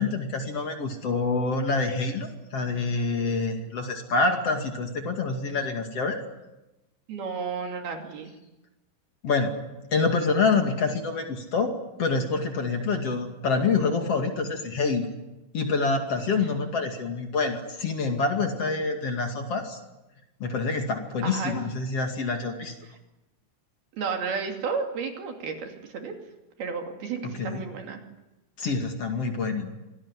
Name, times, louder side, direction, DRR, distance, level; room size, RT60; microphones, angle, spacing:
voice 1, 0.0-6.2 9.2-9.6 9.9-15.1 15.5-19.8 20.4-22.7 27.2-27.7 28.6-29.7, left 4 dB, 40° left, 4 dB, 2.8 m, -26 dB
voice 2, 7.1-8.3 21.2-21.6 23.9-26.2 26.6-28.0, right 5 dB, 65° right, 3 dB, 4.5 m, -32 dB
25.5 x 18.5 x 10.0 m, 1.0 s
omnidirectional pair, 4.8 m